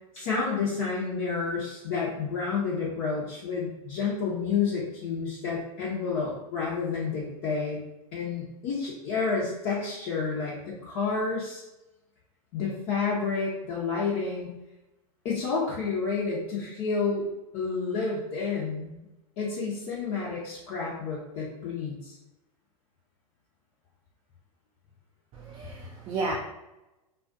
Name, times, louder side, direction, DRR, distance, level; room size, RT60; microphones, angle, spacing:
voice 1, 0.1-7.8 8.1-11.6 12.5-14.5 15.2-17.3 17.5-19.1 19.4-22.2, left 5 dB, 50° left, -6 dB, 0.7 m, -30 dB
voice 2, 25.3-26.3, right 3 dB, 30° right, -3 dB, 0.5 m, -33 dB
2.4 x 2.3 x 2.5 m, 0.96 s
hypercardioid pair, 105°, 19 cm